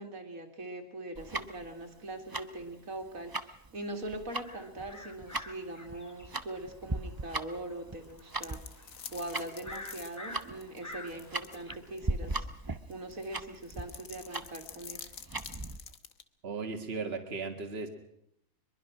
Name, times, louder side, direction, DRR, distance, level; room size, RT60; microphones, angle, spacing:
voice 1, 0.0-8.8 9.1-12.5 12.9-15.1, right 1 dB, 75° right, 4 dB, 3.0 m, -42 dB
Tick-tock, 1.1-15.8, right 2 dB, 20° right, 0.7 m, -39 dB
sound 1, 4.4-11.8, left 1 dB, 15° left, 1.3 m, -49 dB
sound 2, 8.0-11.6 12.0-12.1 12.9-16.2, left 7 dB, 75° left, 1.6 m, -47 dB
voice 2, 16.4-17.9, right 4 dB, 45° right, 3 dB, 2.1 m, -36 dB
23.0 x 22.5 x 6.1 m, 0.77 s
omnidirectional pair, 1.5 m